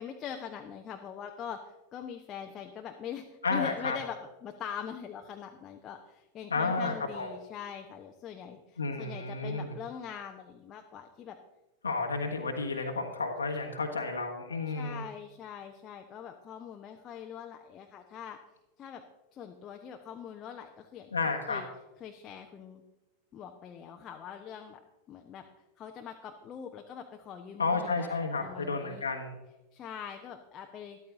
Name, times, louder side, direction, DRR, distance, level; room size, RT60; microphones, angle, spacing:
voice 1, 0.0-11.4 14.7-18.4 18.8-19.1 19.3-21.2 21.5-21.7 22.0-22.8 23.3-24.8 25.1-25.5 25.8-29.1 29.7-31.0, left 8 dB, 30° left, 4 dB, 1.0 m, -43 dB
voice 2, 3.4-4.0 6.5-7.3 8.8-9.7 11.8-15.0 21.1-21.6 27.6-29.4, left 3 dB, 75° left, 2 dB, 1.4 m, -31 dB
13.5 x 12.5 x 3.8 m, 1.0 s
figure-of-eight pair, 90°, 0 cm